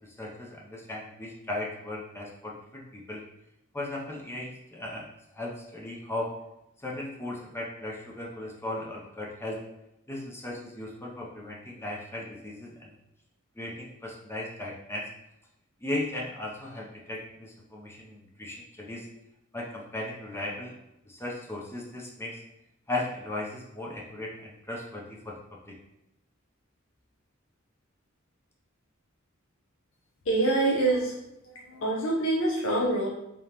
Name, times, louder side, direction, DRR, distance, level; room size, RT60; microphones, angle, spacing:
voice 1, 0.0-3.2 3.7-5.1 5.3-6.3 6.8-9.6 10.1-12.9 13.6-15.1 15.8-19.1 19.5-20.8 21.1-22.4 22.9-25.4 25.7-25.8, left 1 dB, 10° left, -3 dB, 0.5 m, -37 dB
voice 2, 30.2-31.2 31.4-33.1, right 2 dB, 65° left, -3 dB, 0.7 m, -26 dB
3.7 x 3.5 x 2.8 m, 0.88 s
head